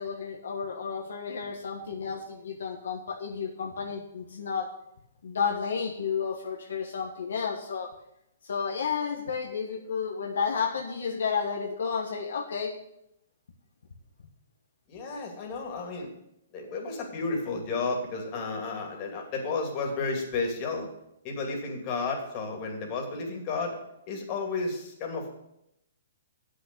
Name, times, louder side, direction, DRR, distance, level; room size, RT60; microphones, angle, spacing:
voice 1, 0.0-4.7 5.2-7.9 8.4-12.7, left 6 dB, 75° left, 1 dB, 1.4 m, -31 dB
voice 2, 14.9-16.1 16.5-20.9 21.2-23.8 24.1-25.3, left 3 dB, 35° left, 1 dB, 2.7 m, -32 dB
7.9 x 6.5 x 8.2 m, 0.81 s
hypercardioid pair, 145°, 0 cm